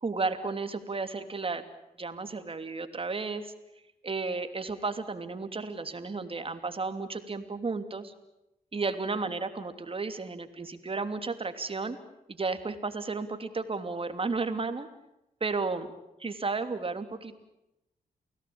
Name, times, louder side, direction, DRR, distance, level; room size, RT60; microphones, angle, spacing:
voice 1, 0.0-1.6 2.0-3.5 4.0-8.1 8.7-12.0 12.3-14.9 15.4-15.9 16.2-17.3, right 4 dB, 35° right, 9 dB, 3.0 m, -33 dB
29.0 x 18.0 x 8.8 m, 0.90 s
cardioid pair, 70°, 16 cm